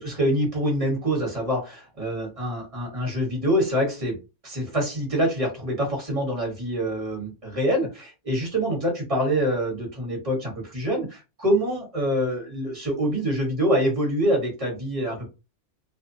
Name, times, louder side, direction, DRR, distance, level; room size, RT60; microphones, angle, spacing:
voice 1, 0.0-4.2 4.4-15.3, equal, 30° right, -1 dB, 1.3 m, -25 dB
2.6 x 2.3 x 2.6 m, 0.28 s
omnidirectional pair, 1.3 m